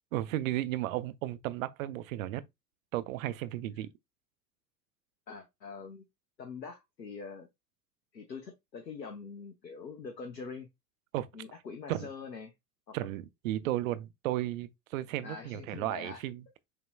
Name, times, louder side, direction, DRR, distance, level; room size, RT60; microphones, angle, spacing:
voice 1, 0.1-2.4 2.9-3.9 11.1-11.3 11.9-12.1 12.9-16.4, right 14 dB, 55° right, 0.6 m, -34 dB
voice 2, 5.3-6.0 6.4-7.5 8.1-10.7 11.3-12.5 12.9-13.0 15.2-16.2, left 5 dB, 85° left, 0.8 m, -44 dB
6.7 x 2.9 x 2.2 m
figure-of-eight pair, 80°, 49 cm